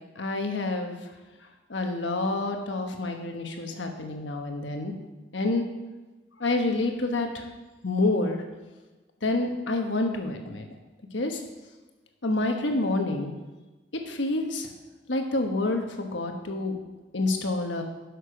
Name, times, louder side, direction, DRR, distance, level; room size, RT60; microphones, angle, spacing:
voice 1, 0.2-1.0 1.7-4.9 5.3-5.6 6.4-7.4 7.8-8.4 9.2-10.7 11.1-11.4 12.2-13.3 14.1-14.7 15.1-16.8 17.1-17.8, left 2 dB, 80° left, 4 dB, 1.3 m, -28 dB
11.5 x 6.6 x 5.1 m, 1.2 s
head